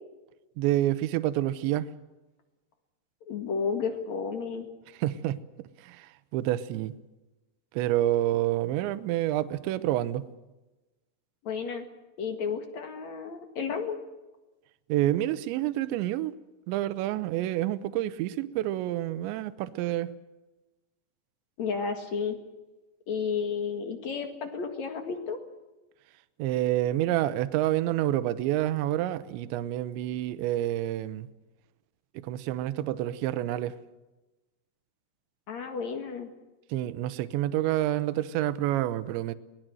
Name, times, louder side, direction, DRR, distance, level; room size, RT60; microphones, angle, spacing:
voice 1, 0.6-1.9 5.0-6.9 7.7-10.3 14.9-16.3 16.7-20.1 26.4-31.3 32.1-33.8 36.7-39.3, right 14 dB, 75° right, 3.0 m, -28 dB
voice 2, 3.3-4.7 11.4-11.8 12.2-14.0 21.6-22.4 23.1-25.4 35.5-36.3, left 5 dB, 55° left, 2.1 m, -32 dB
23.0 x 19.5 x 7.8 m
omnidirectional pair, 5.7 m